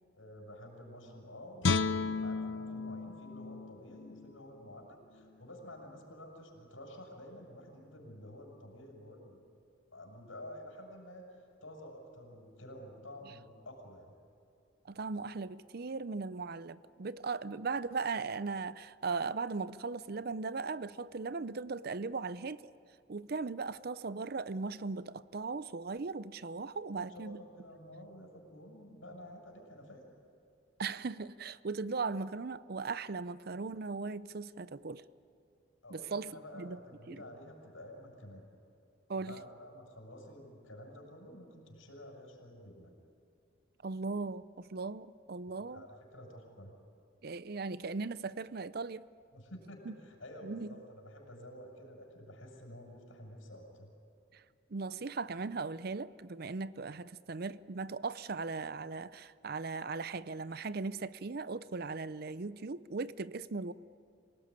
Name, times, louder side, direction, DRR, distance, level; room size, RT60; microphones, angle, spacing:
voice 1, 0.1-9.4 9.9-14.1 26.8-30.0 35.8-38.5 39.3-42.9 45.6-46.7 49.3-53.9, left 1 dB, 85° left, 6.5 m, -50 dB
Guitar, 1.6-4.8 5.2-5.3, left 4 dB, 65° left, 0.6 m, -34 dB
voice 2, 14.9-22.7 23.1-27.4 30.8-35.0 35.9-36.8 37.1-37.2 39.1-39.4 43.8-45.9 47.2-49.1 49.9-50.0 50.4-50.7 54.3-54.4 54.7-63.7, right 4 dB, 50° right, 0.5 m, -38 dB
27.5 x 18.0 x 9.7 m
head